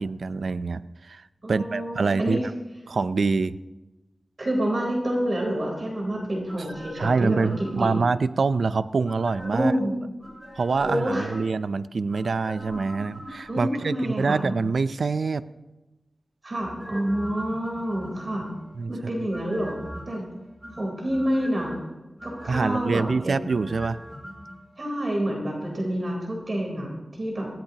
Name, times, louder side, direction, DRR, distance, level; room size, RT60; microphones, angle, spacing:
voice 1, 0.0-1.2 1.5-2.4 2.9-3.6 7.0-9.7 10.6-15.4 18.7-18.9 22.5-24.0, right 4 dB, 80° right, 15 dB, 0.4 m, -25 dB
voice 2, 1.4-2.4 4.4-7.9 9.5-9.9 10.8-11.3 13.5-14.5 16.4-18.5 18.9-20.3 20.8-21.8 22.2-23.5 24.8-26.9 27.1-27.5, equal, 50° right, -1 dB, 3.7 m, -28 dB
sound 1, 6.5-8.3 9.0-9.8 10.2-11.6 12.1-13.8 16.6-18.7 19.3-20.2 20.6-21.8 22.2-24.6 24.8-24.9, equal, 5° right, 6.4 m, -41 dB
22.0 x 16.5 x 2.9 m, 1.1 s
wide cardioid pair, 80°, 0 cm